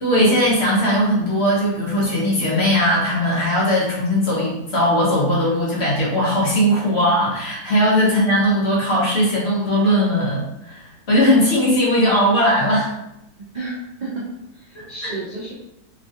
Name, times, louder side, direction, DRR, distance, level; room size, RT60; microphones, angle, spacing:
voice 1, 0.0-12.9 14.7-15.1, equal, 50° left, -5 dB, 0.9 m, -19 dB
voice 2, 13.5-14.3 14.5-15.5, right 2 dB, 70° right, -7 dB, 0.4 m, -31 dB
3.1 x 2.4 x 2.6 m, 0.83 s
omnidirectional pair, 1.7 m